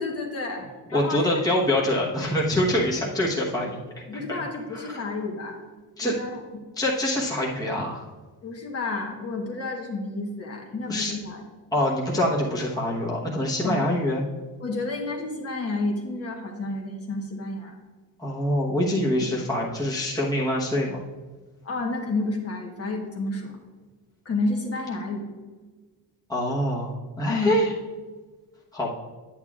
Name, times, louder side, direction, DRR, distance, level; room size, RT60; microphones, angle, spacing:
voice 1, 0.0-1.4 4.0-5.6 6.0-6.4 8.4-11.4 13.6-13.8 14.6-17.7 21.6-23.5 24.2-25.2 27.3-27.6, left 2 dB, 35° left, 0 dB, 1.2 m, -30 dB
voice 2, 0.9-3.8 4.1-4.4 4.7-5.1 6.0-6.1 6.8-8.0 10.9-11.1 11.7-14.2 18.2-21.0 26.3-27.7 28.7-28.9, left 1 dB, 10° left, -4 dB, 1.1 m, -25 dB
10.5 x 8.9 x 2.4 m, 1.3 s
cardioid pair, 175°, 40 cm